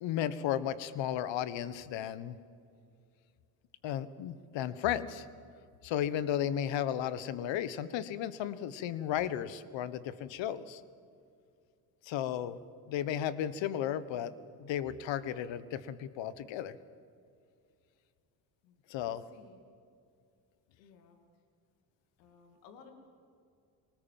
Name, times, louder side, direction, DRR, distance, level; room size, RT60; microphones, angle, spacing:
voice 1, 0.0-2.3 3.8-5.2 5.8-10.8 12.0-12.6 12.9-14.3 14.6-16.8 18.9-19.2, left 10 dB, 65° left, 15 dB, 1.4 m, -34 dB
voice 2, 18.6-19.6 20.8-21.2 22.2-22.9, left 6 dB, 85° left, 5 dB, 2.5 m, -58 dB
23.5 x 19.5 x 7.5 m, 2.3 s
hypercardioid pair, 65°, 49 cm